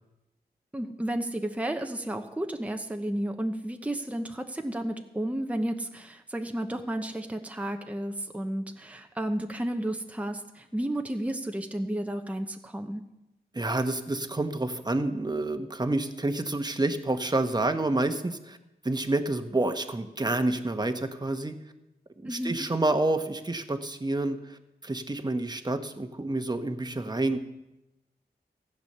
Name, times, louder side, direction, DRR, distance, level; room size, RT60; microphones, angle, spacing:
voice 1, 0.7-13.0 22.3-22.7, right 1 dB, 10° right, 5 dB, 0.9 m, -32 dB
voice 2, 13.5-18.6 18.8-21.5 22.3-27.4, right 2 dB, 25° right, 7 dB, 1.2 m, -28 dB
15.5 x 8.2 x 6.8 m, 0.94 s
wide cardioid pair, 70°, 17 cm